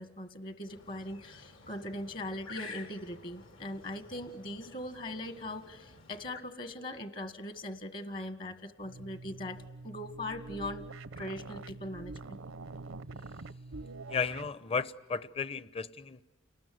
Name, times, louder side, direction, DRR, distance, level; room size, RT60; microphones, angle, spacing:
voice 1, 0.0-10.9 11.2-12.4, left 1 dB, 45° left, 10 dB, 1.5 m, -40 dB
sound 1, 0.7-6.4, left 3 dB, 80° left, 3.5 m, -51 dB
sound 2, 8.8-14.6, right 3 dB, 75° right, 0.8 m, -45 dB
voice 2, 14.1-16.2, left 5 dB, 30° left, 16 dB, 0.8 m, -34 dB
29.5 x 20.0 x 9.3 m, 1.3 s
head